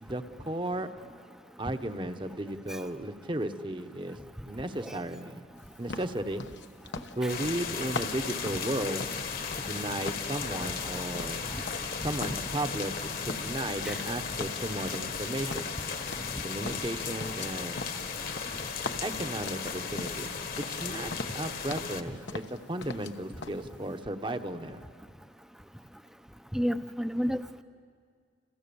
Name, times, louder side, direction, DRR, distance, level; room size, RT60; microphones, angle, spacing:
voice 1, 0.0-0.9 1.6-4.2 4.5-5.4 5.8-6.4 7.2-9.1 9.5-11.5 12.0-15.7 16.4-17.9 19.0-20.3 20.7-24.8, right 1 dB, 25° right, 8 dB, 1.0 m, -35 dB
sound 1, 5.9-9.8 10.0-12.0 12.2-13.0 13.3-14.1 14.4-16.4 16.7-20.3 20.6-20.8 21.1-22.0 22.3-23.1 23.4-23.6, left 3 dB, 65° left, 1.1 m, -41 dB
sound 2, 7.3-22.0, left 5 dB, 50° left, 1.6 m, -36 dB
voice 2, 26.5-27.6, equal, 5° right, 9 dB, 0.7 m, -30 dB
30.0 x 28.0 x 7.1 m, 2.1 s
head